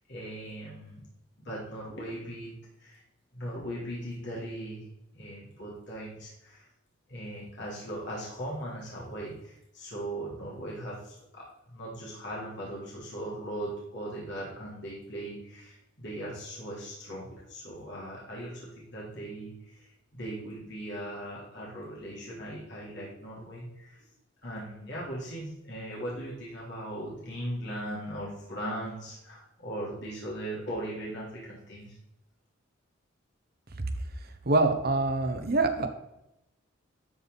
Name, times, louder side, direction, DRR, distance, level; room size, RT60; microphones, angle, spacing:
voice 1, 0.1-1.0 1.4-2.5 2.8-3.0 3.3-4.8 5.1-6.7 7.1-24.0 24.4-32.0, right 1 dB, 60° left, -6 dB, 3.7 m, -39 dB
voice 2, 34.4-35.9, right 2 dB, 50° right, 7 dB, 1.1 m, -25 dB
12.5 x 5.5 x 4.1 m, 0.87 s
head